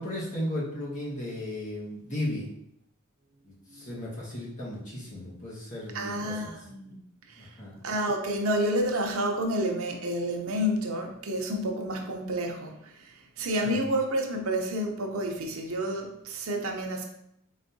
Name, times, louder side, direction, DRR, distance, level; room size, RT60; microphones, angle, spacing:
voice 1, 0.0-2.5 3.4-6.5 7.4-7.8 13.6-13.8, left 1 dB, 35° left, -6 dB, 1.4 m, -35 dB
voice 2, 5.9-7.0 7.3-7.5 7.8-17.0, equal, 70° right, 2 dB, 0.7 m, -30 dB
4.1 x 3.5 x 2.7 m, 0.76 s
head